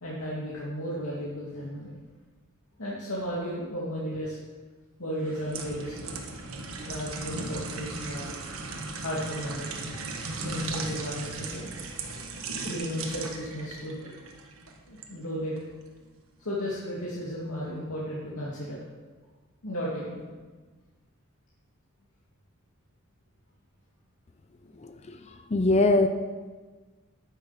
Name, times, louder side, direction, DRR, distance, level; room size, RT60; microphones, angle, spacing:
voice 1, 0.0-1.9 2.8-4.4 5.0-6.1 6.8-8.3 9.0-9.7 10.4-11.7 12.6-14.1 14.9-15.5 16.4-18.8 19.6-20.2, equal, 90° left, -7 dB, 2.4 m, -34 dB
sound 1, 5.2-15.1 15.6-15.7, right 3 dB, 85° right, 1.5 m, -37 dB
voice 2, 24.7-26.1, left 2 dB, 30° left, 7 dB, 0.5 m, -24 dB
10.0 x 9.3 x 5.8 m, 1.4 s
head